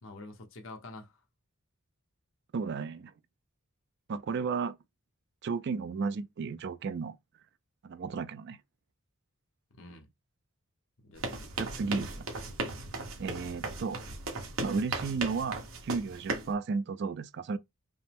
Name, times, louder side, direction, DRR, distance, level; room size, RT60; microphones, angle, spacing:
voice 1, 0.0-1.2 9.7-10.1 11.0-11.5, left 2 dB, 65° left, 0.9 m, -48 dB
voice 2, 2.5-3.1 4.1-4.8 5.4-7.2 7.8-8.6 11.6-12.3 13.2-14.0 14.6-17.6, right 4 dB, 50° right, 0.4 m, -33 dB
sound 1, 11.1-16.5, right 2 dB, 70° right, 1.1 m, -37 dB
5.4 x 2.0 x 3.5 m
head